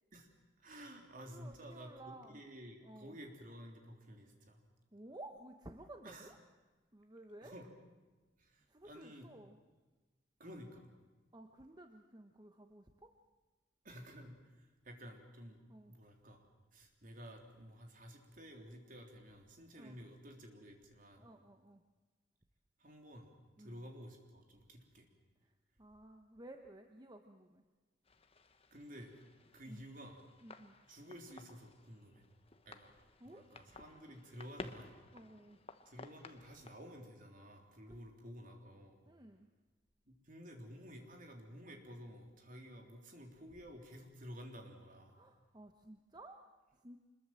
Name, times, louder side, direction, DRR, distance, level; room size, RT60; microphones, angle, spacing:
voice 1, 0.6-4.6 6.0-6.3 7.4-7.7 8.4-9.3 10.4-10.9 13.8-15.6 15.9-16.5 16.7-21.3 22.8-25.1 28.7-29.1 29.5-30.2 30.9-32.2 32.7-32.9 33.2-35.0 35.9-39.1 40.1-45.2, equal, 45° right, 3 dB, 3.5 m, -52 dB
voice 2, 1.3-2.4 2.8-3.2 4.9-6.4 6.9-7.5 8.7-9.6 11.3-13.1 15.7-15.9 19.7-20.0 21.1-21.8 23.6-23.9 25.4-27.6 29.7-29.8 30.4-30.7 33.2-33.5 35.1-35.6 37.9-38.0 39.1-39.5 45.1-47.0, right 1 dB, 20° right, 5 dB, 1.1 m, -55 dB
sound 1, 28.0-36.8, left 3 dB, 30° left, 1.1 m, -55 dB
25.5 x 21.5 x 7.7 m, 1.3 s
head